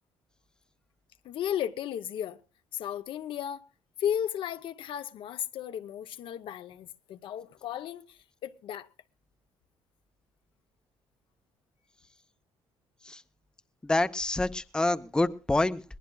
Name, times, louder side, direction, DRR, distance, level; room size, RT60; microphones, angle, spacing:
voice 1, 1.2-2.4 2.7-3.7 4.0-8.9, left 10 dB, 65° left, 0.7 m, -34 dB
voice 2, 13.8-15.8, left 2 dB, 10° left, 0.7 m, -27 dB
22.0 x 18.5 x 2.3 m
cardioid pair, 110°, 9 cm